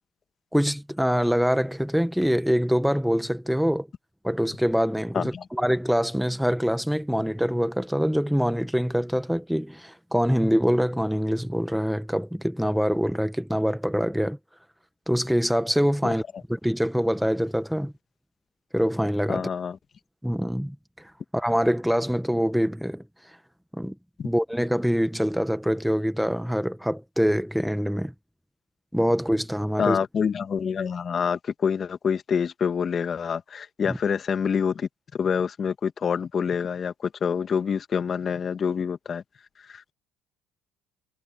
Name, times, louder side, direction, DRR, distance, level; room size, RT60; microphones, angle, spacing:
voice 1, 0.5-3.9 4.2-14.4 15.1-16.2 16.5-17.9 18.7-19.5 20.2-20.7 21.3-23.0 23.7-23.9 24.2-28.1 28.9-30.0 33.9-34.0, equal, ahead, 1.5 m, -24 dB
voice 2, 5.1-5.5 16.0-16.1 19.3-19.8 24.2-24.3 29.8-39.2 39.7-39.9, left 6 dB, 40° left, 1.8 m, -27 dB
supercardioid pair, 85°, 0 cm